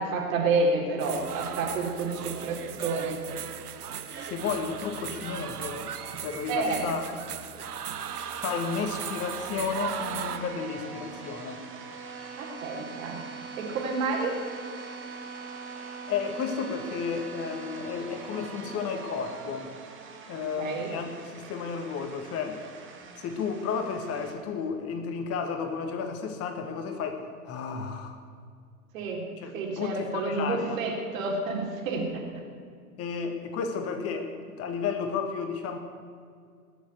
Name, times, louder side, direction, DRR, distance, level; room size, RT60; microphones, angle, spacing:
voice 1, 0.0-3.2 6.5-6.8 12.4-13.2 13.6-14.3 20.6-20.9 28.9-29.2 29.5-32.2, right 3 dB, 60° right, 0 dB, 3.8 m, -29 dB
sound 1, 1.0-10.4, right 8 dB, 75° right, 1.1 m, -37 dB
voice 2, 4.2-5.9 6.2-7.0 8.3-11.7 16.1-19.7 20.3-22.6 23.2-28.2 29.4-30.8 33.0-34.3 34.6-35.8, left 6 dB, 30° left, 7 dB, 1.5 m, -32 dB
sound 2, 8.0-24.3, right 5 dB, 25° right, 2.3 m, -43 dB
20.5 x 7.1 x 8.1 m, 2.2 s
figure-of-eight pair, 100°, 46 cm